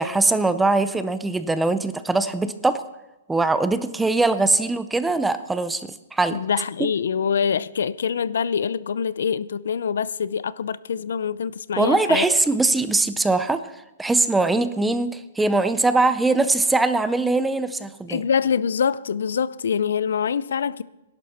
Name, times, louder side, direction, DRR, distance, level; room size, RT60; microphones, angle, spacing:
voice 1, 0.0-2.8 3.3-6.4 11.8-13.6 14.0-18.2, right 3 dB, 5° right, 0.4 m, -21 dB
voice 2, 6.3-12.3 18.1-20.8, left 7 dB, 80° left, 0.5 m, -25 dB
19.0 x 11.5 x 4.3 m
hypercardioid pair, 170°, 0 cm